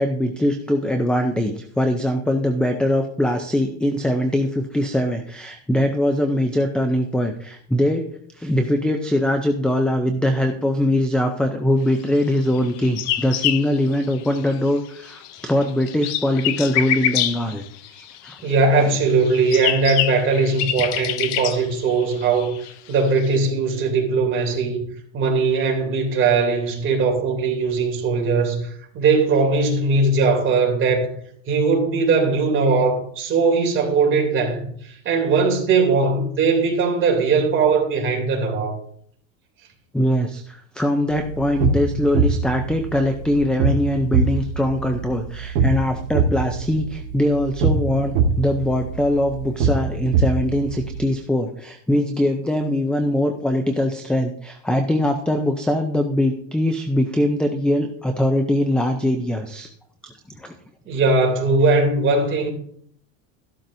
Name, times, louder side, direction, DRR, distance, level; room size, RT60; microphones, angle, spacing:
voice 1, 0.0-8.1 8.4-17.6 17.9-18.4 39.9-59.7 60.4-60.5, left 1 dB, 5° left, 5 dB, 0.4 m, -22 dB
sound 1, 12.5-14.7 15.0-18.5 19.1-23.4, left 12 dB, 45° left, 0.6 m, -26 dB
voice 2, 18.4-22.6 22.9-24.8 25.1-31.2 31.5-38.7 60.9-62.5, right 4 dB, 30° right, 0 dB, 3.0 m, -20 dB
sound 2, 41.1-51.0, right 4 dB, 85° right, 1.8 m, -23 dB
13.5 x 11.5 x 2.7 m, 0.63 s
cardioid pair, 155°, 38 cm